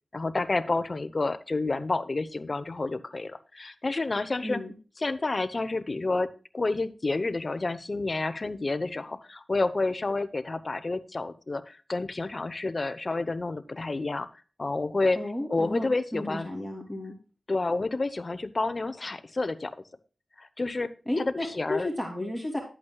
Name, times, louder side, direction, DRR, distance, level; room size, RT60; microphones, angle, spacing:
voice 1, 0.1-4.6 5.0-14.3 14.6-15.2 15.5-16.5 17.5-19.8 20.4-21.9, left 3 dB, 40° left, 11 dB, 0.9 m, -29 dB
voice 2, 4.4-4.7 15.2-17.1 21.1-22.6, left 1 dB, 5° left, -1 dB, 2.8 m, -33 dB
12.5 x 8.4 x 2.3 m, 0.35 s
wide cardioid pair, 75°, 0 cm